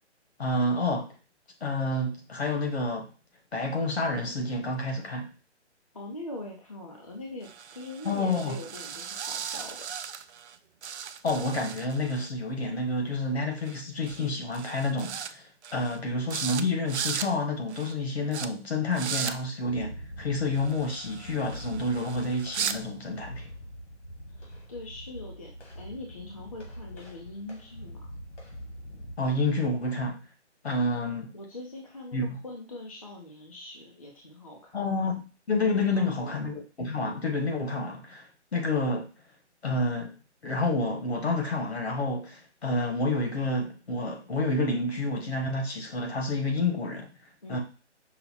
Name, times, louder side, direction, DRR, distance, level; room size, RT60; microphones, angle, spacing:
voice 1, 0.4-1.1 1.6-3.1 3.5-5.3 8.0-8.6 11.2-15.4 15.7-23.5 29.2-30.2 30.6-31.3 32.1-32.4 34.7-39.1 39.6-40.1 40.4-47.1 47.5-47.6, left 2 dB, 65° left, 1.4 m, -29 dB
voice 2, 5.9-10.0 24.3-28.0 31.3-35.0 35.9-36.5 47.4-47.6, left 2 dB, 30° left, 0.5 m, -42 dB
sound 1, 7.4-10.6 10.8-12.3 13.7-13.8 14.1-14.3 14.5-15.3 15.6-16.0 16.3-16.6 16.9-17.3 17.7-17.9 18.3-18.5 18.9-19.3 20.5-22.8, right 8 dB, 70° right, 0.5 m, -37 dB
sound 2, 19.7-29.1, equal, 80° left, 2.0 m, -44 dB
5.6 x 2.1 x 4.1 m
hypercardioid pair, 175°, 35 cm